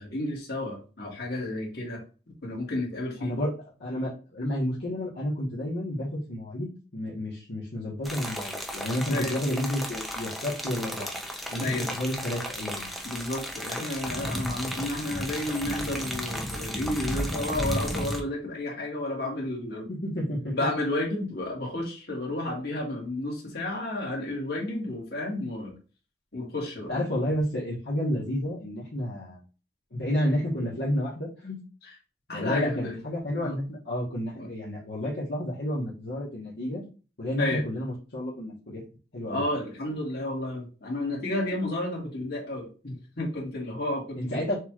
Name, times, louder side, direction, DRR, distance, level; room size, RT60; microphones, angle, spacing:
voice 1, 0.0-2.0 2.4-3.3 9.1-9.4 11.6-11.9 13.0-19.9 20.5-25.7 26.3-26.9 32.3-33.0 33.4-33.6 34.3-34.5 37.4-37.6 39.3-44.4, left 1 dB, 60° left, -3 dB, 1.9 m, -31 dB
voice 2, 3.2-3.5 3.8-11.1 11.5-12.9 19.9-20.6 26.9-29.4 29.9-31.6 32.3-36.8 37.2-38.8 39.1-39.4 44.2-44.5, left 1 dB, 80° left, -6 dB, 1.3 m, -31 dB
sound 1, 8.1-18.2, equal, ahead, 0.5 m, -34 dB
6.5 x 2.4 x 3.0 m, 0.34 s
head